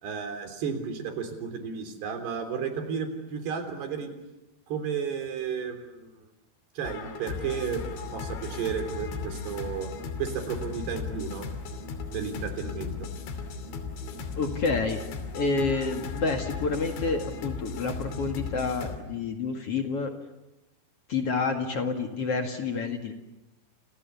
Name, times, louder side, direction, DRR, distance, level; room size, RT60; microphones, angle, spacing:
voice 1, 0.0-4.1 4.7-6.1 6.8-7.8 8.1-9.9 10.2-11.5 12.1-12.9, right 7 dB, 65° right, 6 dB, 5.6 m, -33 dB
sound 1, 6.8-19.0, left 5 dB, 85° left, 5.0 m, -36 dB
voice 2, 14.4-15.0 15.3-20.1 21.1-23.1, left 4 dB, 45° left, 4 dB, 2.2 m, -29 dB
29.5 x 28.0 x 7.1 m, 0.97 s
omnidirectional pair, 5.1 m